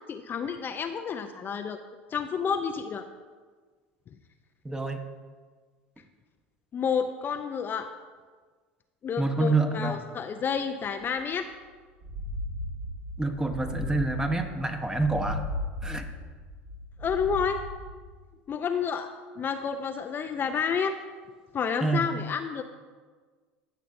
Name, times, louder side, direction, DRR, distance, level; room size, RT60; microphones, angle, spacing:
voice 1, 0.1-1.8 2.1-3.0 6.7-7.9 9.0-11.5 17.0-17.6 18.5-20.9 21.5-22.6, left 6 dB, 35° left, 7 dB, 0.5 m, -30 dB
voice 2, 4.6-5.0 9.2-9.9 13.2-15.4 15.8-16.0 21.8-22.0, right 3 dB, 10° right, 6 dB, 1.1 m, -27 dB
sound 1, 11.0-11.1 11.4-11.5 11.9-18.1, left 2 dB, 60° right, 2.4 m, -36 dB
15.0 x 6.4 x 2.6 m, 1.5 s
hypercardioid pair, 80°, 6 cm